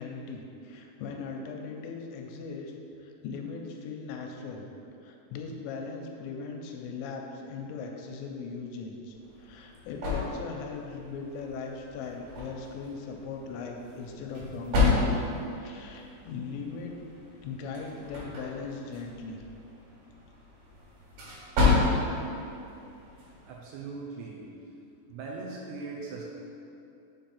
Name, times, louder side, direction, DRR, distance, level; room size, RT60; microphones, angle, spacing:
voice 1, 0.0-2.7 3.0-4.7 5.0-15.3 15.6-16.9 17.4-19.4, left 4 dB, 90° left, 2 dB, 2.9 m, -39 dB
sound 1, 9.1-23.6, left 3 dB, 65° right, 3.5 m, -32 dB
voice 2, 23.5-24.5 25.1-26.2, right 4 dB, 80° right, -2 dB, 2.5 m, -40 dB
7.3 x 3.4 x 5.8 m, 2.7 s
omnidirectional pair, 5.1 m